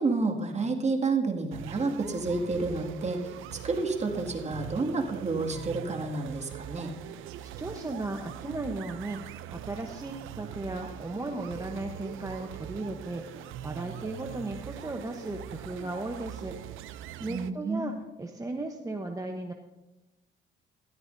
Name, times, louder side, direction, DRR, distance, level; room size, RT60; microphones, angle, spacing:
voice 1, 0.0-6.9 17.3-17.8, right 3 dB, 35° right, 2 dB, 2.1 m, -30 dB
sound 1, 1.5-17.5, right 11 dB, 85° right, 0.5 m, -42 dB
voice 2, 7.0-17.9 18.2-19.5, right 2 dB, 15° right, 4 dB, 0.9 m, -36 dB
15.5 x 13.5 x 2.7 m, 1.0 s
cardioid pair, 90°, 20 cm